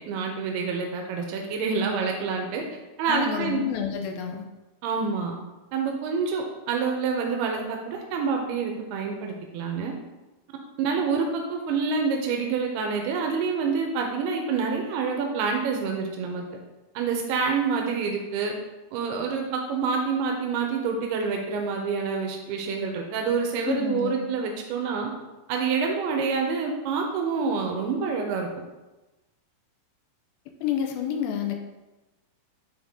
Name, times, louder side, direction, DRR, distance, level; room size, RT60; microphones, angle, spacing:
voice 1, 0.1-2.6 3.0-3.6 4.8-5.3 5.7-9.9 10.8-16.4 17.0-18.5 18.9-25.1 25.5-28.5, right 5 dB, 85° right, 2 dB, 2.7 m, -27 dB
voice 2, 3.1-4.5 23.7-24.3 30.6-31.6, left 8 dB, 80° left, 4 dB, 2.3 m, -29 dB
9.1 x 3.9 x 3.6 m, 1.1 s
omnidirectional pair, 4.5 m